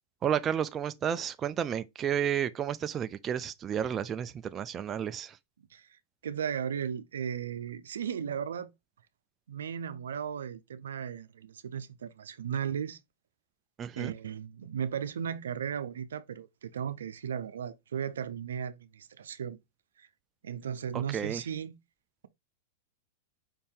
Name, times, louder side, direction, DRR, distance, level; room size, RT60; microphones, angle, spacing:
voice 1, 0.2-5.4 13.8-14.1 20.9-21.4, right 9 dB, 25° right, 0.4 m, -32 dB
voice 2, 6.2-8.7 9.5-13.0 14.0-19.6 20.0-20.1 20.4-21.8, right 8 dB, 85° right, 0.5 m, -36 dB
5.3 x 2.7 x 3.7 m
hypercardioid pair, 125°, 0 cm